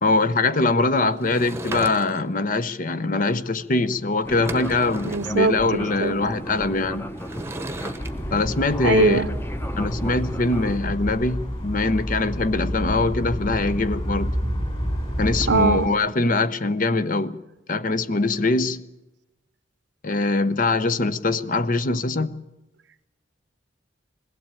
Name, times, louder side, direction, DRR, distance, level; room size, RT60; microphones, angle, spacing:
voice 1, 0.0-7.1 8.3-9.2 9.8-14.3 15.2-17.4 17.7-18.9 20.0-22.4, left 3 dB, 45° left, 0.8 m, -23 dB
Sliding door / Wood, 1.2-2.4 3.9-4.0 4.3-5.4 7.2-8.1, right 2 dB, 15° right, 1.0 m, -35 dB
Fixed-wing aircraft airplane, 4.2-10.8, equal, 10° left, 0.8 m, -35 dB
voice 2, 5.0-6.1 8.8-9.3 15.5-15.9, right 4 dB, 75° right, 0.8 m, -21 dB
sound 1, 8.0-15.9, equal, 30° left, 4.3 m, -29 dB
21.0 x 16.0 x 8.9 m
head